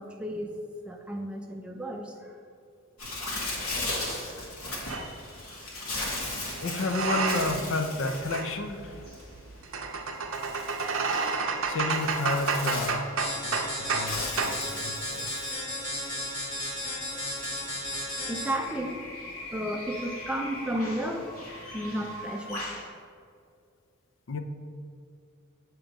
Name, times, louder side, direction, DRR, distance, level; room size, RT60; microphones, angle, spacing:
voice 1, 0.0-2.4 17.6-18.0 18.3-19.1 19.5-22.7, equal, 5° right, 1 dB, 0.4 m, -33 dB
Bird, 3.0-22.9, left 2 dB, 85° left, 1.3 m, -38 dB
sound 1, 4.9-5.1 6.1-7.7 8.0-14.1 14.4-14.6, right 4 dB, 70° right, 0.6 m, -31 dB
voice 2, 6.6-9.1 10.4-11.3 11.7-13.2 13.4-15.4 24.3-24.4, left 2 dB, 65° left, 6 dB, 0.5 m, -32 dB
sound 2, 13.2-18.7, left 1 dB, 25° left, 1.4 m, -34 dB
7.4 x 3.0 x 5.1 m, 2.3 s
head